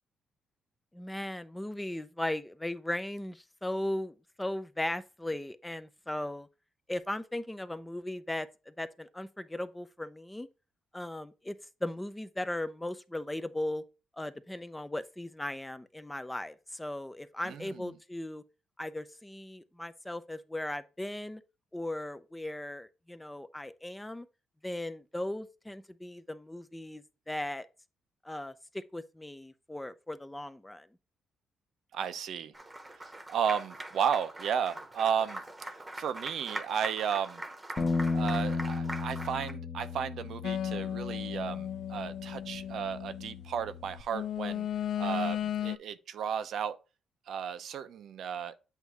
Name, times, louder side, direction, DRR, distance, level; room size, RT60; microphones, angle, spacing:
voice 1, 0.9-6.5 6.9-10.5 10.9-11.6 11.8-13.8 14.1-18.4 18.8-21.4 21.7-24.3 24.6-27.7 28.2-30.9, left 1 dB, 10° left, 0.5 m, -37 dB
voice 2, 17.4-17.9 31.9-32.5 33.3-35.4 36.0-37.4 38.1-44.7 45.0-46.8 47.3-48.6, right 8 dB, 70° right, 0.6 m, -33 dB
Applause, 32.5-39.5, right 1 dB, 15° right, 1.0 m, -43 dB
Bass guitar, 37.8-44.0, left 4 dB, 35° left, 0.9 m, -35 dB
sound 1, 40.4-43.4 44.1-45.8, left 10 dB, 70° left, 0.3 m, -35 dB
8.1 x 2.7 x 4.6 m
cardioid pair, 90°, 0 cm